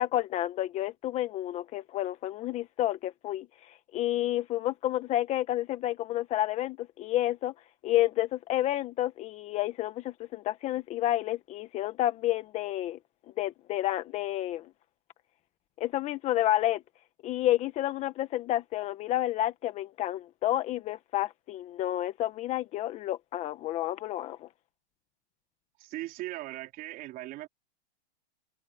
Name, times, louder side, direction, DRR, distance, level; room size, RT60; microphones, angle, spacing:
voice 1, 0.0-7.5 7.8-13.0 13.4-14.7 15.8-16.8 17.2-24.5, left 14 dB, 20° left, 1.2 m, -30 dB
voice 2, 25.8-27.5, right 16 dB, 25° right, 4.1 m, -39 dB
hypercardioid pair, 155°, 33 cm